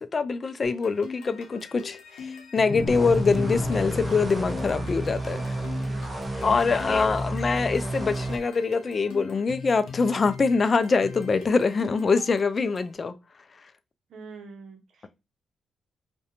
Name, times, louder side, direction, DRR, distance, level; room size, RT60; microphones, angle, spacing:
voice 1, 0.0-5.6 6.4-13.2, left 4 dB, 40° left, 0.3 m, -24 dB
sound 1, 0.6-13.0, left 5 dB, 85° left, 0.6 m, -42 dB
sound 2, 2.7-7.1, left 3 dB, 60° left, 0.8 m, -33 dB
sound 3, 2.9-8.4, right 1 dB, 20° right, 0.6 m, -32 dB
voice 2, 5.8-7.2 14.1-15.1, right 4 dB, 75° right, 0.6 m, -46 dB
2.4 x 2.1 x 2.8 m
cardioid pair, 80°, 0 cm